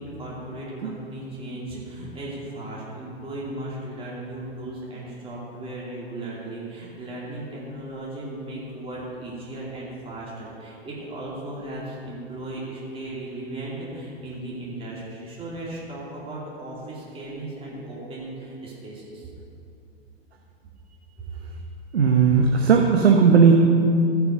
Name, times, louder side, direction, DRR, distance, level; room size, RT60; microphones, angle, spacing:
voice 1, 0.0-19.3, right 1 dB, 15° right, -6 dB, 2.7 m, -36 dB
voice 2, 21.9-23.5, right 6 dB, 85° right, 2 dB, 0.9 m, -16 dB
15.0 x 5.8 x 5.4 m, 2.6 s
hypercardioid pair, 100°, 31 cm